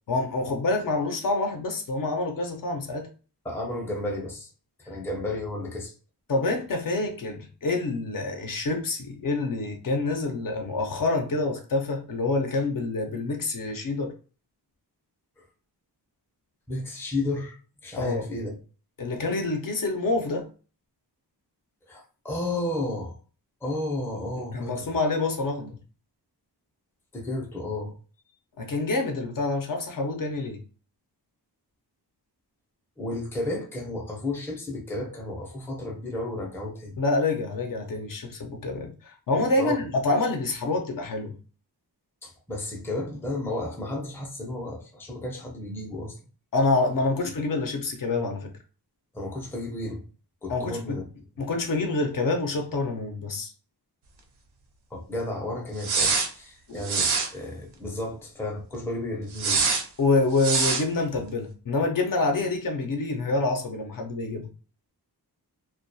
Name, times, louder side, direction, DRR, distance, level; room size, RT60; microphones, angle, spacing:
voice 1, 0.1-3.1 6.3-14.1 18.0-18.3 19.0-20.5 24.4-25.8 28.6-30.6 37.0-41.4 46.5-48.5 50.5-51.0 51.4-53.5 56.7-56.8 60.0-64.5, left 3 dB, 55° left, 0.5 m, -27 dB
voice 2, 3.4-4.5 4.8-5.9 15.4-15.5 16.7-17.6 17.8-18.5 21.9-23.2 23.6-24.8 27.1-28.0 33.0-37.0 39.6-39.8 42.2-46.2 47.2-47.3 49.1-50.0 50.4-51.1 54.9-59.7, left 1 dB, 5° left, 0.5 m, -32 dB
sound 1, 55.8-56.3 56.8-57.3 59.3-59.8 60.4-60.8, right 4 dB, 70° right, 0.6 m, -24 dB
2.2 x 2.2 x 2.6 m
wide cardioid pair, 155°, 41 cm